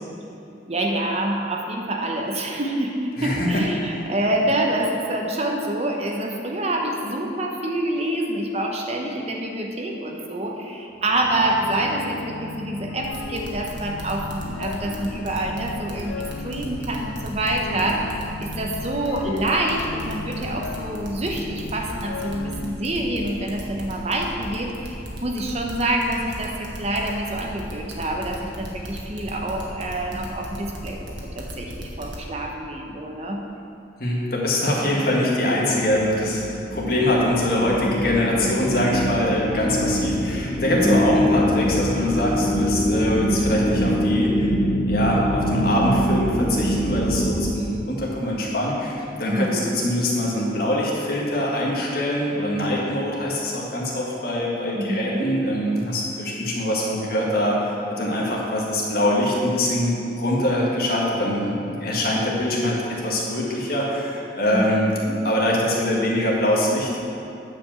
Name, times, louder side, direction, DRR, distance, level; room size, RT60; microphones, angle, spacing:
voice 1, 0.7-31.0 31.3-33.4 40.7-41.4 49.3-49.8 54.7-55.3 64.5-64.7 65.1-65.2, right 1 dB, 35° right, 1 dB, 0.9 m, -26 dB
voice 2, 3.2-4.1 34.0-44.5 44.9-62.8 63.0-64.9 65.2-67.0, left 1 dB, 50° left, -3 dB, 1.8 m, -23 dB
sound 1, 10.9-22.7, left 4 dB, 85° left, 0.4 m, -36 dB
sound 2, 13.0-32.2, right 1 dB, 75° right, 1.7 m, -36 dB
sound 3, 35.8-47.5, equal, 35° left, 0.7 m, -24 dB
9.8 x 5.2 x 7.4 m, 2.7 s
head